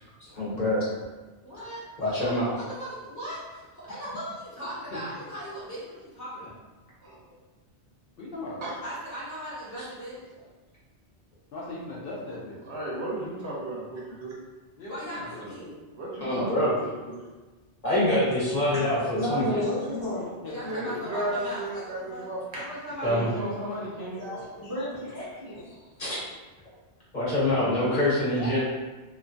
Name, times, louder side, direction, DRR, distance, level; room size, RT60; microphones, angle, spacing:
voice 1, 0.4-0.8 2.0-2.5 16.2-16.7 17.8-19.4 23.0-23.3 26.0-26.2 27.1-28.6, left 1 dB, 45° left, -9 dB, 1.0 m, -25 dB
voice 2, 1.4-6.6 8.8-10.2 14.9-15.8 20.5-23.3, equal, 15° left, -10 dB, 0.9 m, -39 dB
voice 3, 4.9-5.2 8.2-8.6 11.5-12.6 14.8-15.6 20.4-21.1 23.1-24.2, left 1 dB, 60° left, -5 dB, 0.7 m, -38 dB
voice 4, 12.6-14.3 16.0-17.2 20.6-22.7 23.0-23.7 24.2-24.4, right 1 dB, 70° right, -4 dB, 1.0 m, -34 dB
voice 5, 18.7-20.3 24.1-25.9 28.4-28.6, equal, 30° right, -10 dB, 0.5 m, -32 dB
2.9 x 2.2 x 2.6 m, 1.2 s
omnidirectional pair, 1.2 m